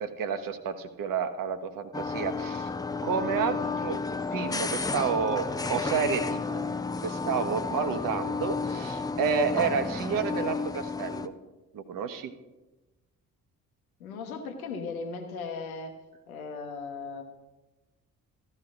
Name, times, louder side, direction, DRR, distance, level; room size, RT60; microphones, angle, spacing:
voice 1, 0.0-2.7 3.0-4.0 4.3-6.6 7.0-11.3 11.7-12.3, right 6 dB, 50° right, 8 dB, 1.0 m, -30 dB
sound 1, 1.9-11.3, left 4 dB, 10° left, 0.4 m, -32 dB
voice 2, 14.0-15.9 16.3-17.2, left 4 dB, 80° left, 5 dB, 0.9 m, -37 dB
15.0 x 12.0 x 2.5 m, 1.1 s
figure-of-eight pair, 45°, 42 cm